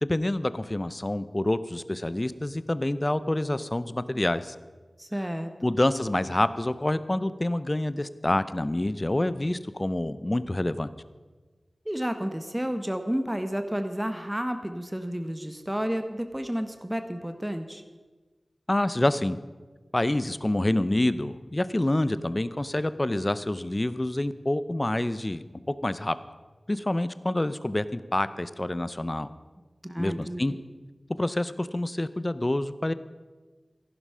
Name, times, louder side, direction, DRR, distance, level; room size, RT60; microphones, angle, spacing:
voice 1, 0.0-4.5 5.6-10.9 18.7-19.4 19.9-26.2 26.7-29.3 30.0-30.5 31.1-32.9, left 1 dB, 30° left, 14 dB, 0.6 m, -27 dB
voice 2, 5.0-5.5 11.8-17.8 29.8-30.4, equal, 10° right, 7 dB, 1.0 m, -31 dB
14.5 x 11.0 x 5.6 m, 1.3 s
wide cardioid pair, 70°, 0 cm